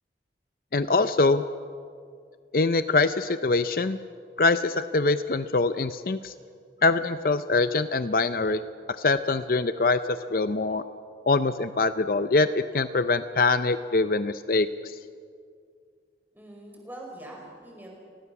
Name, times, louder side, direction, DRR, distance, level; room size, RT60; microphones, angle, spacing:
voice 1, 0.7-1.4 2.5-4.0 4.4-6.3 6.8-8.6 9.0-10.0 10.3-10.8 11.3-15.0, left 3 dB, 50° left, 11 dB, 0.6 m, -24 dB
voice 2, 16.3-17.9, right 1 dB, 10° right, -1 dB, 5.2 m, -43 dB
30.0 x 19.5 x 6.0 m, 2.2 s
head